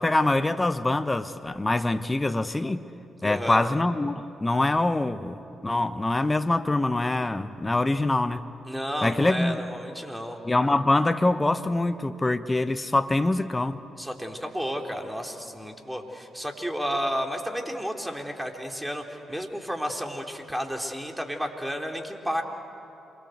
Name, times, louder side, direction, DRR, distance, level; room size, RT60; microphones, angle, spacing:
voice 1, 0.0-2.8 3.2-8.4 9.0-9.6 10.4-13.8, left 2 dB, 25° left, 10 dB, 1.1 m, -24 dB
voice 2, 3.2-3.6 8.7-10.4 14.0-22.4, equal, 5° right, 2 dB, 3.9 m, -32 dB
27.5 x 23.0 x 8.1 m, 2.8 s
hypercardioid pair, 40°, 0 cm